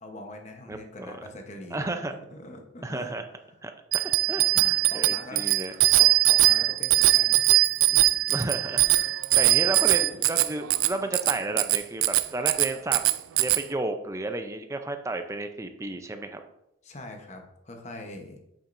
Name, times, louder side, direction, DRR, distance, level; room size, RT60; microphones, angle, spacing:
voice 1, 0.0-1.9 2.3-3.1 4.5-7.4 7.9-8.0 8.8-9.0 9.7-9.8 16.8-18.4, left 1 dB, 35° left, 4 dB, 1.0 m, -43 dB
voice 2, 1.7-2.1 2.8-3.3 3.6-5.7 8.3-8.9 9.3-13.0 13.4-16.4, right 2 dB, 15° right, 6 dB, 0.5 m, -32 dB
Bicycle bell, 3.9-13.6, right 17 dB, 85° right, 0.4 m, -21 dB
8.4 x 7.2 x 2.6 m, 0.84 s
head